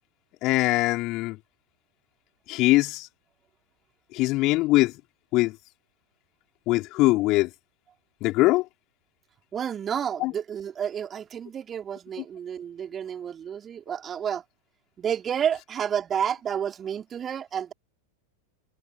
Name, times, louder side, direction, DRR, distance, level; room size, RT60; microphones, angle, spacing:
voice 1, 0.4-1.4 2.5-3.1 4.1-5.0 5.3-5.6 6.7-7.5 8.2-8.7 10.2-10.3 12.2-12.3, left 20 dB, 40° left, 4.2 m, -22 dB
voice 2, 9.5-14.4 15.0-17.7, right 8 dB, 25° right, 4.2 m, -30 dB
figure-of-eight pair, 90°, 0 cm